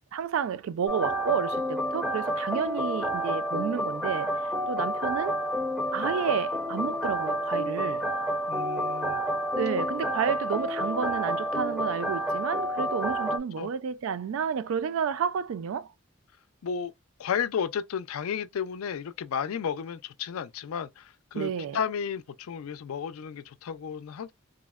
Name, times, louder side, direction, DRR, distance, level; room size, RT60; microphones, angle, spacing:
voice 1, 0.1-4.4 4.7-5.3 5.9-8.0 9.5-15.9 21.3-21.8, right 7 dB, 75° right, 0.3 m, -30 dB
sound 1, 0.9-13.4, equal, 5° right, 0.4 m, -29 dB
voice 2, 8.5-9.2 13.6-13.7 16.6-16.9 17.2-24.3, left 7 dB, 90° left, 0.4 m, -33 dB
3.5 x 2.0 x 2.3 m
head